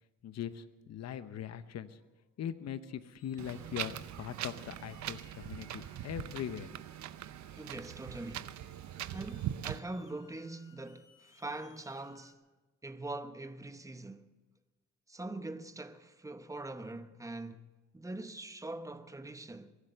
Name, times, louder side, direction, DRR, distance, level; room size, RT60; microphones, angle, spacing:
voice 1, 0.2-2.0 2.4-6.7, left 9 dB, 60° left, 0.9 m, -41 dB
sound 1, 3.2-12.3, left 7 dB, 85° left, 1.6 m, -65 dB
Wind, 3.4-9.8, right 12 dB, 65° right, 0.7 m, -41 dB
voice 2, 7.5-8.6 9.1-12.4 12.8-14.3 15.1-17.7 17.9-19.8, right 2 dB, 10° right, 1.0 m, -43 dB
22.5 x 8.3 x 6.8 m
cardioid pair, 90°, 30 cm